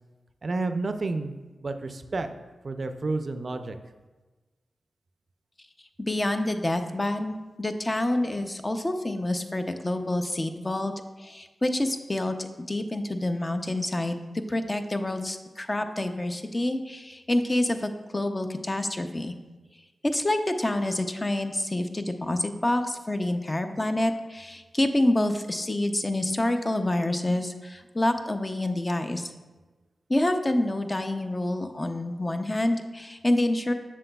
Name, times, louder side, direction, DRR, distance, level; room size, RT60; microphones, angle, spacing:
voice 1, 0.4-1.3 1.6-2.3 2.6-3.8, right 3 dB, 55° right, 8 dB, 0.4 m, -30 dB
voice 2, 6.0-10.9 11.2-19.3 20.0-29.3 30.1-33.7, left 1 dB, 25° left, 7 dB, 0.5 m, -27 dB
7.5 x 6.2 x 2.3 m, 1.2 s
cardioid pair, 60°, 0 cm